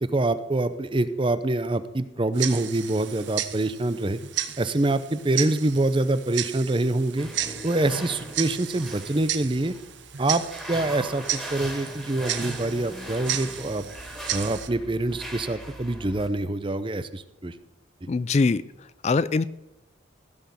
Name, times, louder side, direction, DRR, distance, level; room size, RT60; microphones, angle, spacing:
voice 1, 0.0-4.2 4.6-7.3 7.6-9.7 10.2-10.4 10.7-13.8 14.3-17.5 18.0-18.1, right 2 dB, 25° right, 12 dB, 0.6 m, -25 dB
Tick-tock, 2.3-14.7, right 11 dB, 70° right, 0.8 m, -34 dB
sound 1, 7.2-16.3, right 1 dB, ahead, 2.3 m, -39 dB
voice 2, 18.1-18.6 19.0-19.4, left 4 dB, 35° left, 16 dB, 0.3 m, -22 dB
15.5 x 6.3 x 7.0 m, 0.95 s
head